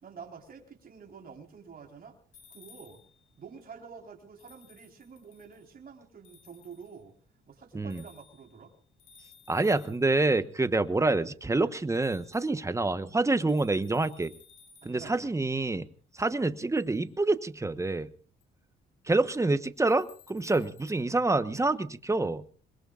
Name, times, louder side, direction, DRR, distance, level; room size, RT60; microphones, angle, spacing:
voice 1, 0.0-2.2 2.5-3.0 3.4-7.2 7.5-8.7 14.8-15.3 20.5-20.7, right 6 dB, 45° right, 1 dB, 4.3 m, -48 dB
sound 1, 2.3-3.2 4.4-5.7 6.2-7.0 7.9-8.5 9.0-10.3 11.9-12.5 13.5-15.1 16.8-17.0 18.4-18.5 19.8-21.0, left 6 dB, 90° left, 4.8 m, -57 dB
voice 2, 9.5-14.3 14.8-15.9 16.2-18.1 19.1-22.4, right 2 dB, 15° right, 12 dB, 1.1 m, -27 dB
26.0 x 21.5 x 2.5 m, 0.40 s
cardioid pair, 90°, 20 cm